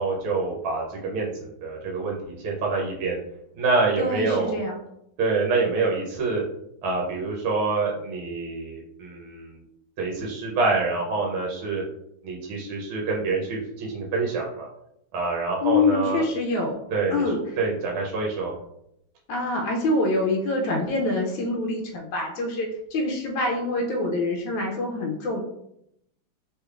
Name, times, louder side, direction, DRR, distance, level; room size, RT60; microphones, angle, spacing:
voice 1, 0.0-3.2 3.5-4.6 5.2-6.4 6.8-9.6 10.0-11.8 12.2-14.7 15.1-16.2 16.9-17.2 17.6-18.5, right 3 dB, 75° right, -2 dB, 1.5 m, -26 dB
voice 2, 4.0-4.8 15.6-16.8 17.1-17.4 19.3-25.4, left 2 dB, 75° left, 0 dB, 1.2 m, -25 dB
3.6 x 3.2 x 2.3 m, 0.77 s
omnidirectional pair, 2.4 m